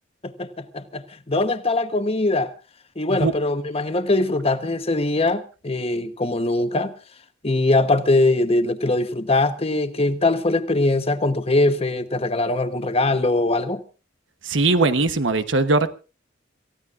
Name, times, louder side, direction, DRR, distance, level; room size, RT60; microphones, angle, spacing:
voice 1, 0.2-2.5 3.0-6.9 7.4-13.8, left 2 dB, 30° left, 1.1 m, -22 dB
voice 2, 14.4-15.9, right 3 dB, 75° right, 1.2 m, -20 dB
28.0 x 15.5 x 2.6 m
head